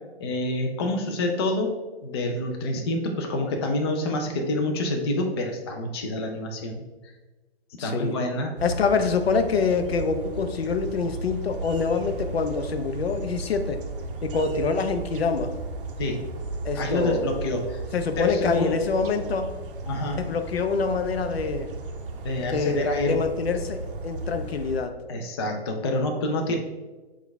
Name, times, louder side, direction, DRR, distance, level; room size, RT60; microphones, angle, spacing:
voice 1, 0.2-1.7 2.0-6.8 7.8-8.5 16.0-16.2 16.7-17.8 18.2-18.9 19.9-20.2 22.2-23.2 25.1-26.6, left 1 dB, 25° left, 2 dB, 0.4 m, -27 dB
voice 2, 7.8-8.2 8.6-13.8 14.2-15.5 16.6-17.3 17.9-19.5 20.1-21.7 22.5-24.9, left 5 dB, 70° left, 7 dB, 0.6 m, -26 dB
sound 1, 8.6-24.8, right 3 dB, 55° right, 0.6 m, -35 dB
6.0 x 2.4 x 3.4 m, 1.2 s
figure-of-eight pair, 125°, 31 cm